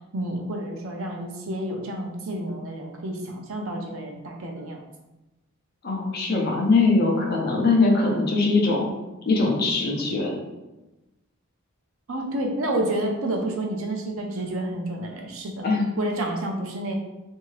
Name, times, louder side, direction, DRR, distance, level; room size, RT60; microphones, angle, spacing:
voice 1, 0.1-4.8 12.1-15.7 16.0-17.0, right 1 dB, 75° right, 1 dB, 0.6 m, -29 dB
voice 2, 5.8-8.9 9.3-10.3 15.6-15.9, left 3 dB, 45° left, -1 dB, 0.6 m, -21 dB
2.7 x 2.6 x 3.1 m, 1.0 s
head